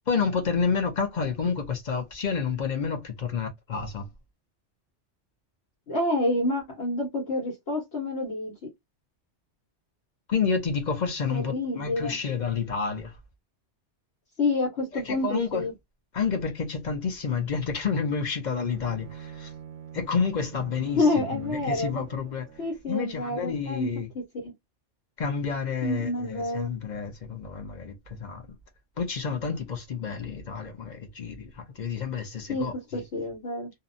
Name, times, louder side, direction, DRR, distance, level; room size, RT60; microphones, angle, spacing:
voice 1, 0.1-4.1 10.3-13.1 15.1-15.6 16.1-19.5 19.9-22.5 22.8-24.1 25.2-28.4 29.0-33.0, left 5 dB, 45° left, 0.7 m, -29 dB
voice 2, 5.9-8.5 11.3-12.2 14.4-15.7 21.0-22.0 22.6-23.9 24.3-24.5 25.8-26.7 32.5-33.7, left 2 dB, 65° left, 1.3 m, -28 dB
Bowed string instrument, 18.7-22.9, right 9 dB, 80° right, 0.9 m, -44 dB
2.7 x 2.1 x 2.5 m
omnidirectional pair, 1.2 m